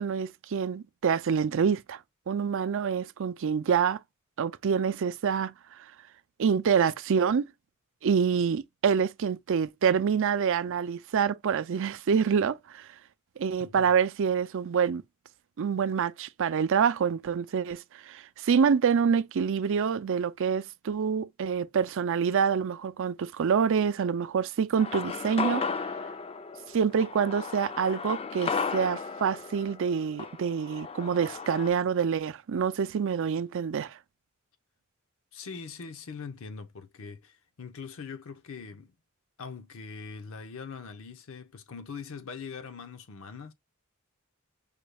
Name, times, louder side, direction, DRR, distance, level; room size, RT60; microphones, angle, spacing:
voice 1, 0.0-2.0 2.3-4.0 4.4-5.5 6.4-7.4 8.0-12.9 13.4-15.0 15.6-25.6 26.7-34.0, right 6 dB, 65° right, 0.4 m, -26 dB
voice 2, 13.6-13.9 35.3-38.9 39.4-43.5, left 5 dB, 65° left, 0.6 m, -42 dB
sound 1, 24.8-31.7, left 5 dB, 25° left, 0.3 m, -35 dB
5.1 x 2.3 x 3.3 m
head